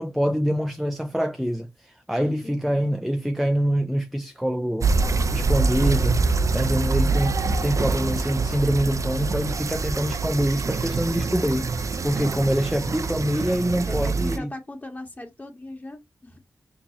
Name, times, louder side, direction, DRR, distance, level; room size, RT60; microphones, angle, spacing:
voice 1, 0.0-4.9 5.3-6.2 6.5-14.5, equal, ahead, 0.4 m, -25 dB
voice 2, 2.2-2.9 7.7-8.3 12.1-12.7 13.9-16.4, left 2 dB, 25° left, 1.6 m, -39 dB
sound 1, 4.8-14.4, right 4 dB, 55° right, 0.5 m, -25 dB
4.5 x 2.7 x 2.7 m
cardioid pair, 60°, 7 cm